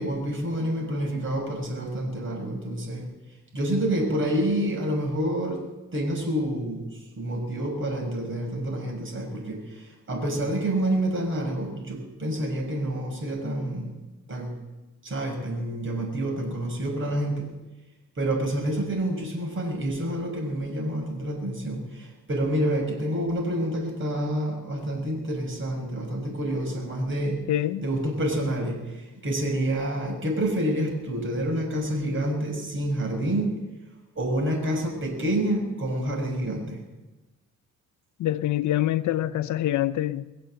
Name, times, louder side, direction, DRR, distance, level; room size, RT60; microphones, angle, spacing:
voice 1, 0.0-3.1 3.5-13.9 14.3-14.5 15.0-17.5 18.2-27.5 27.8-33.6 34.1-36.8, right 1 dB, 40° right, 6.5 m, -28 dB
voice 2, 27.5-27.8 38.2-40.2, left 13 dB, 75° left, 0.7 m, -25 dB
22.5 x 8.0 x 7.8 m
cardioid pair, 90°, 30 cm